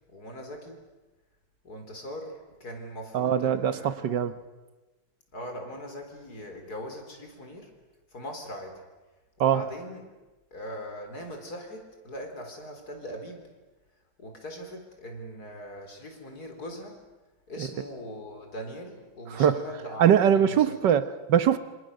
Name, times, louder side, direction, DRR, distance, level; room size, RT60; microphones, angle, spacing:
voice 1, 0.1-0.8 1.6-4.0 5.3-7.7 8.1-8.8 9.4-10.0 10.5-13.4 14.2-17.0 17.5-20.8, equal, 50° left, 4 dB, 4.6 m, -41 dB
voice 2, 3.1-4.4 9.4-9.6 17.6-17.7 19.3-19.6 20.0-21.6, right 9 dB, 65° right, 12 dB, 1.6 m, -22 dB
27.0 x 26.5 x 6.6 m, 1.2 s
omnidirectional pair, 2.2 m